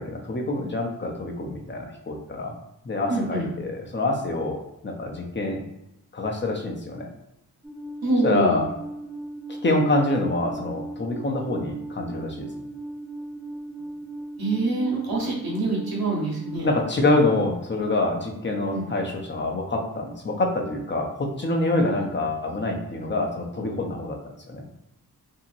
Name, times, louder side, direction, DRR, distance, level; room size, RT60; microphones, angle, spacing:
voice 1, 0.0-2.5 2.8-4.6 4.8-5.6 6.1-7.1 8.2-8.7 9.6-12.5 16.6-24.2 24.5-24.7, left 2 dB, 30° left, 2 dB, 0.6 m, -26 dB
voice 2, 3.1-3.5 8.0-8.6 14.4-16.7 18.7-18.9, right 2 dB, 70° right, -3 dB, 1.2 m, -25 dB
Alarm, 7.6-16.6, right 2 dB, 10° right, 0.7 m, -37 dB
2.8 x 2.8 x 2.5 m, 0.88 s
wide cardioid pair, 85°, 37 cm